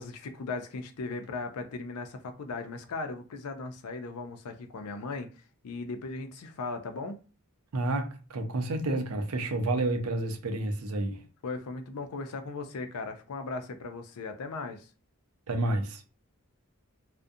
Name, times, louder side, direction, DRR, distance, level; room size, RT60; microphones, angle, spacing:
voice 1, 0.0-5.3 5.6-7.2 11.4-14.9, left 3 dB, 90° left, 0.4 m, -37 dB
voice 2, 7.7-11.2 15.5-16.0, right 2 dB, 80° right, 0.5 m, -30 dB
2.4 x 2.1 x 2.6 m
head